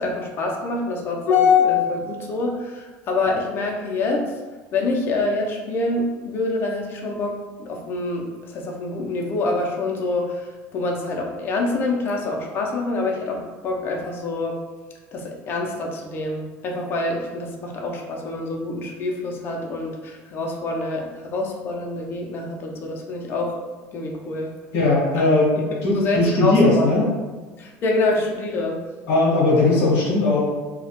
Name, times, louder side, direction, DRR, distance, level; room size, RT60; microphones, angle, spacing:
voice 1, 0.0-4.3 4.7-14.6 15.1-23.6 23.9-24.5 25.2-25.3 25.9-27.0 27.6-28.8, left 3 dB, 40° left, 0 dB, 0.5 m, -25 dB
voice 2, 24.7-27.0 29.1-30.4, left 2 dB, 70° left, -5 dB, 0.7 m, -18 dB
2.2 x 2.1 x 2.8 m, 1.3 s
supercardioid pair, 125°, 6 cm